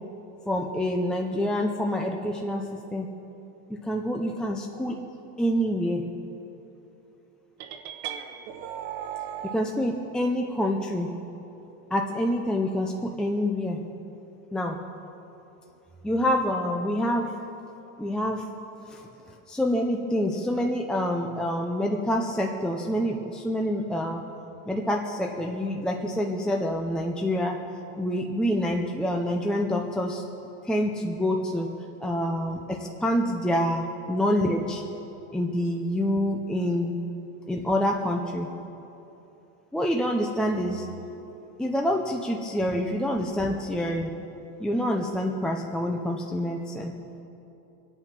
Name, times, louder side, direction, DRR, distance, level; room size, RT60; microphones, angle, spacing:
voice 1, 0.5-3.1 3.7-5.0 5.4-6.0 9.4-11.1 11.9-13.8 14.5-14.8 16.0-17.3 18.0-18.5 18.9-19.0 19.5-24.2 24.7-27.6 28.0-30.2 30.6-31.7 32.0-34.8 35.3-37.0 37.5-38.5 39.7-40.9 41.6-44.2 44.6-46.9, equal, 5° left, 1 dB, 0.5 m, -27 dB
sound 1, 7.6-9.6, right 10 dB, 65° right, 1.2 m, -36 dB
25.0 x 9.0 x 5.8 m, 3.0 s
cardioid pair, 175°, 31 cm